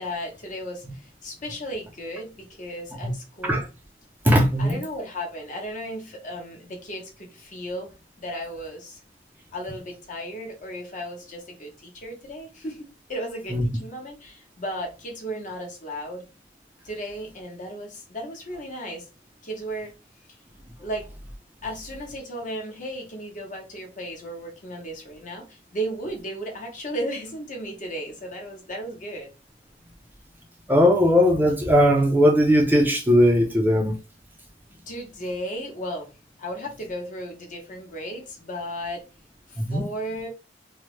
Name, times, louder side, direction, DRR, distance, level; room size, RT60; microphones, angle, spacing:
voice 1, 0.0-3.6 4.6-7.9 8.2-9.0 9.5-12.8 13.1-16.2 16.8-19.0 19.4-19.9 20.8-21.1 21.6-29.3 34.9-36.1 36.4-39.0 39.5-40.3, equal, 45° left, 0.9 m, -35 dB
voice 2, 4.2-4.8 13.5-13.6 30.7-33.9 39.6-39.9, equal, 10° right, 0.4 m, -19 dB
3.2 x 2.0 x 3.0 m
head